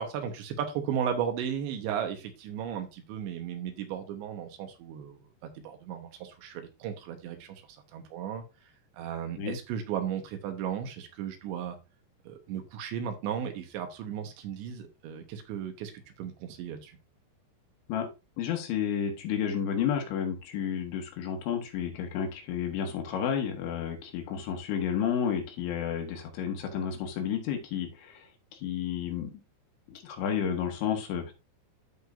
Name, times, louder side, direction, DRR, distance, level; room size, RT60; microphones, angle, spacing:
voice 1, 0.0-7.6 7.9-8.4 8.9-11.8 12.3-17.0, right 8 dB, 80° right, 3.4 m, -35 dB
voice 2, 18.4-29.3 29.9-31.3, left 8 dB, 85° left, 3.9 m, -31 dB
13.5 x 4.8 x 2.6 m
omnidirectional pair, 5.3 m